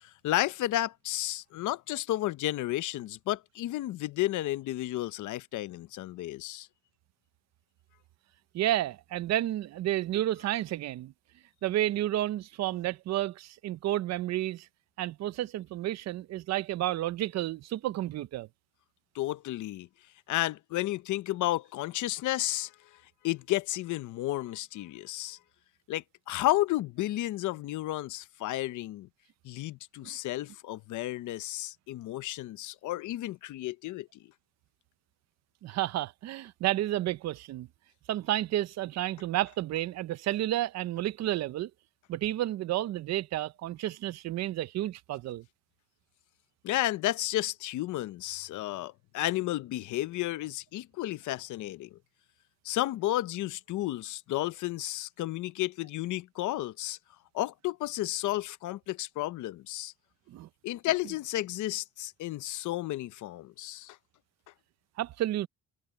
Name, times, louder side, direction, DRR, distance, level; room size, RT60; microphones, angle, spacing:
voice 1, 0.0-6.7 19.1-19.9 20.3-22.7 23.2-25.4 25.9-29.1 29.4-34.2 46.6-52.0 52.6-57.0 57.3-59.9 60.6-64.0, left 15 dB, 75° left, 0.8 m, -32 dB
voice 2, 8.5-11.1 11.6-14.7 15.0-18.5 30.0-30.1 35.6-37.7 38.1-41.7 42.1-45.4 60.3-60.5 65.0-65.5, right 14 dB, 60° right, 0.6 m, -31 dB
cardioid pair, 175°, 30 cm